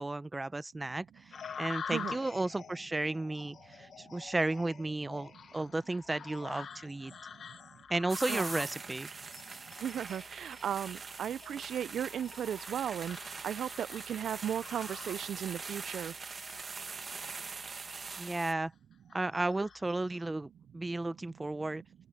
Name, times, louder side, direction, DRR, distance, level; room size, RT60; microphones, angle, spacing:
voice 1, 0.0-7.1 7.9-9.1 18.2-18.7 19.1-21.8, right 2 dB, 15° right, 0.6 m, -34 dB
sound 1, 1.3-15.6 16.1-16.7 17.2-17.4 18.0-18.6 19.1-20.3, left 6 dB, 50° left, 1.2 m, -47 dB
voice 2, 7.1-7.6 8.3-8.4 9.5-16.1, right 9 dB, 65° right, 0.4 m, -36 dB
sound 2, 8.1-18.5, right 4 dB, 30° right, 1.2 m, -43 dB
open air
wide cardioid pair, 150°, 0 cm